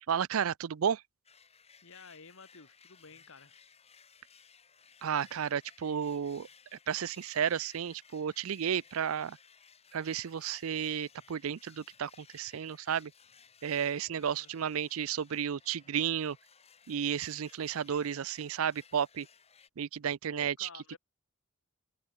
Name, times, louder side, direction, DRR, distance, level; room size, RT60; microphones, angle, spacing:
voice 1, 0.1-1.0 5.0-6.5 6.9-9.4 9.9-13.1 13.6-16.4 16.9-19.3 19.8-20.7, right 8 dB, 75° right, 0.5 m, -32 dB
sound 1, 1.2-19.7, left 6 dB, 30° left, 2.3 m, -60 dB
voice 2, 1.8-3.6 14.0-14.5 20.3-21.0, left 4 dB, 65° left, 1.6 m, -53 dB
open air
head